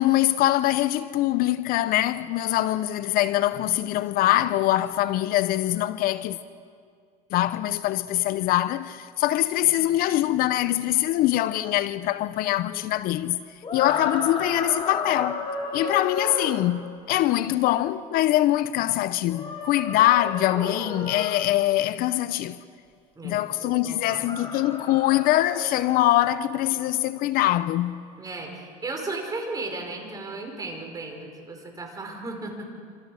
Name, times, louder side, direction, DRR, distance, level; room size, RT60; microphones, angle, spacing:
voice 1, 0.0-6.4 7.3-13.4 13.7-15.4 15.7-22.6 23.2-28.0, left 14 dB, 55° left, 0.7 m, -23 dB
sound 1, 13.6-16.6 19.3-21.4 24.0-26.0, left 3 dB, 30° left, 4.7 m, -33 dB
voice 2, 23.2-24.4 28.2-32.8, right 3 dB, 20° right, 5.2 m, -35 dB
27.0 x 27.0 x 6.5 m
supercardioid pair, 120°, 18 cm